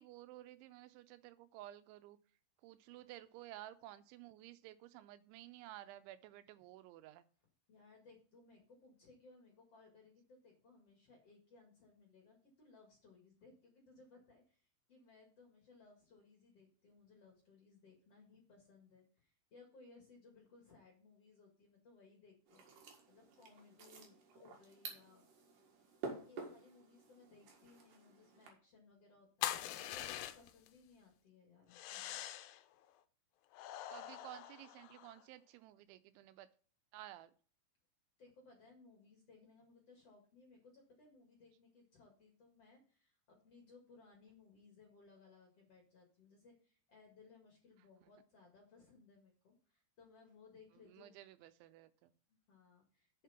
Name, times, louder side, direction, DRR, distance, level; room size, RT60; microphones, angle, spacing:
voice 1, 0.0-2.2 2.6-7.3 33.9-36.5 36.9-37.3 50.9-52.1, right 14 dB, 85° right, 13 dB, 2.9 m, -54 dB
voice 2, 7.7-25.2 26.1-32.2 38.2-51.2 52.3-53.2, left 3 dB, 45° left, 0 dB, 2.2 m, -64 dB
sound 1, 22.5-28.5, right 4 dB, 55° right, 2.8 m, -51 dB
sound 2, 29.4-30.7 31.7-32.6 33.5-35.2, left 13 dB, 80° left, 2.5 m, -43 dB
7.3 x 6.6 x 5.7 m, 0.43 s
omnidirectional pair, 5.4 m